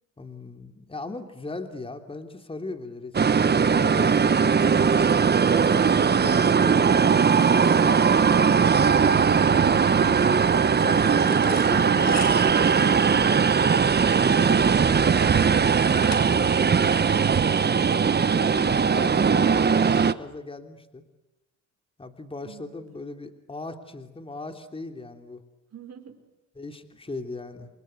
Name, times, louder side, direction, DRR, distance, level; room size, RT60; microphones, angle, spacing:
voice 1, 0.2-4.6 5.4-7.5 7.8-10.2 10.7-13.6 18.3-21.0 22.0-25.4 26.6-27.7, left 2 dB, 20° left, 6 dB, 3.1 m, -38 dB
sound 1, 3.1-20.1, right 6 dB, 35° right, 1.3 m, -20 dB
sound 2, 11.2-16.6, left 6 dB, 60° left, 6.5 m, -41 dB
voice 2, 22.4-22.8 25.7-26.2, right 8 dB, 55° right, 5 dB, 4.8 m, -43 dB
29.5 x 24.5 x 8.2 m, 0.99 s
cardioid pair, 90°, 30 cm